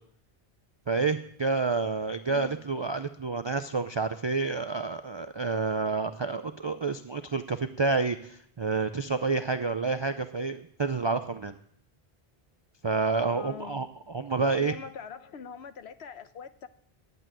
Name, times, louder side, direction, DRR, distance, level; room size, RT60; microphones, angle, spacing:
voice 1, 0.9-11.5 12.8-14.7, right 4 dB, 35° right, 0.4 m, -29 dB
voice 2, 13.3-13.9 14.4-16.7, left 6 dB, 85° left, 1.1 m, -43 dB
11.0 x 8.3 x 9.1 m
omnidirectional pair, 1.1 m